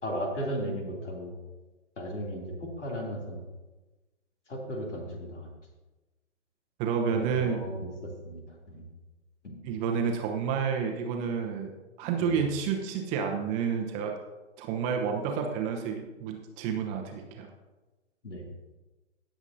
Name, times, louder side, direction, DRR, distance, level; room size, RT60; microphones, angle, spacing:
voice 1, 0.0-1.3 2.0-3.4 4.5-5.5 7.1-8.8 9.4-9.5 12.3-12.4 18.2-18.5, equal, 75° left, 0 dB, 3.0 m, -36 dB
voice 2, 6.8-7.6 9.6-11.7 12.0-14.1 14.6-17.5, right 6 dB, 20° right, 3 dB, 0.8 m, -30 dB
17.5 x 7.1 x 2.7 m, 1.2 s
figure-of-eight pair, 125°, 36 cm